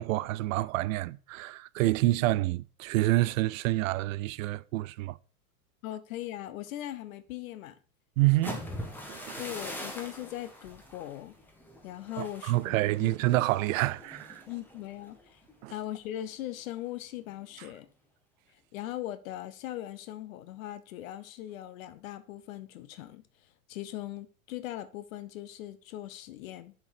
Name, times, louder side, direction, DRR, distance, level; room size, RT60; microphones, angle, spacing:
voice 1, 0.0-5.2 8.2-8.5 9.1-9.4 12.2-14.4 15.6-15.7, right 17 dB, 60° right, 0.5 m, -28 dB
voice 2, 5.8-7.8 8.4-8.6 9.4-11.4 11.8-13.1 14.5-15.4 15.7-17.9 18.5-26.7, left 13 dB, 65° left, 0.8 m, -40 dB
sound 1, 8.3-16.1 16.5-16.8 17.2-17.6, left 1 dB, 5° left, 1.5 m, -44 dB
6.9 x 4.5 x 4.9 m
hypercardioid pair, 120°, 44 cm